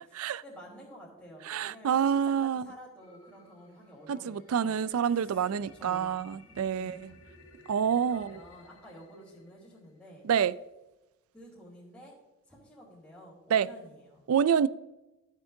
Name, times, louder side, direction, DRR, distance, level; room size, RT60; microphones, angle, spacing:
voice 1, 0.0-4.8 5.2-6.2 6.5-7.0 8.1-10.3 11.3-12.1 12.5-14.3, equal, 10° left, 3.1 m, -51 dB
voice 2, 1.5-2.7 4.1-7.1 7.7-8.3 10.2-10.6 13.5-13.7 14.3-14.7, right 7 dB, 80° right, 0.4 m, -27 dB
sound 1, 3.0-10.0, left 2 dB, 90° left, 3.0 m, -57 dB
14.0 x 8.0 x 2.7 m
head